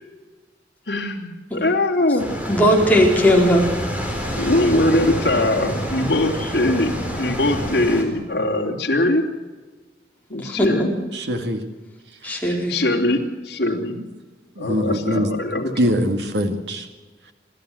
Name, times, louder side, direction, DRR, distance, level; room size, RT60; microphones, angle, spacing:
voice 1, 0.9-2.3 4.4-9.3 10.3-10.9 12.7-14.0 14.6-15.9, left 1 dB, 65° left, -1 dB, 3.1 m, -21 dB
sound 1, 2.2-8.0, equal, 10° right, 4.2 m, -28 dB
voice 2, 2.5-3.7 10.4-10.9 12.2-12.8, equal, 10° left, -1 dB, 4.5 m, -18 dB
voice 3, 11.1-11.6 12.3-12.4 14.6-15.3 15.8-16.8, equal, 80° right, 6 dB, 2.2 m, -22 dB
27.5 x 13.0 x 7.9 m, 1.3 s
head